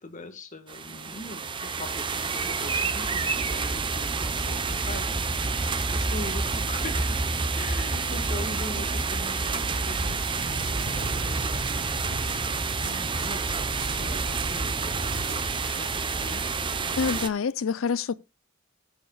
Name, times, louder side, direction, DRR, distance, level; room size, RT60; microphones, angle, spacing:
voice 1, 0.0-7.2 7.6-12.0 12.8-15.0 15.7-16.5, left 2 dB, 40° left, 1.6 m, -41 dB
sound 1, 0.7-17.3, right 4 dB, 25° right, 0.7 m, -28 dB
sound 2, 10.1-15.4, right 1 dB, 65° right, 2.1 m, -38 dB
voice 2, 17.0-18.2, left 5 dB, 80° left, 0.5 m, -27 dB
18.0 x 7.2 x 2.3 m
head